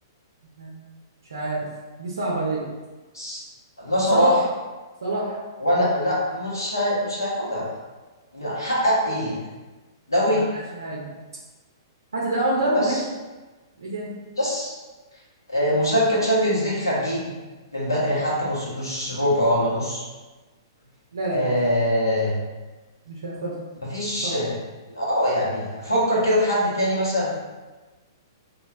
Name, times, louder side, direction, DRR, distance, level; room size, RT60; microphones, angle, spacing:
voice 1, 1.3-1.7 2.0-2.7 4.1-4.4 5.0-5.4 5.7-5.9 10.3-11.1 12.1-13.0 13.8-14.1 21.1-21.5 23.1-23.6 24.2-24.5, right 2 dB, 70° right, -4 dB, 0.5 m, -26 dB
voice 2, 3.8-4.4 5.6-7.7 8.3-9.4 10.1-10.4 12.7-13.0 14.4-14.7 15.5-17.3 17.7-20.0 21.3-22.4 23.9-24.5 24.9-27.3, equal, 90° left, -6 dB, 0.9 m, -23 dB
3.0 x 2.3 x 2.2 m, 1.2 s
figure-of-eight pair, 110°, 2 cm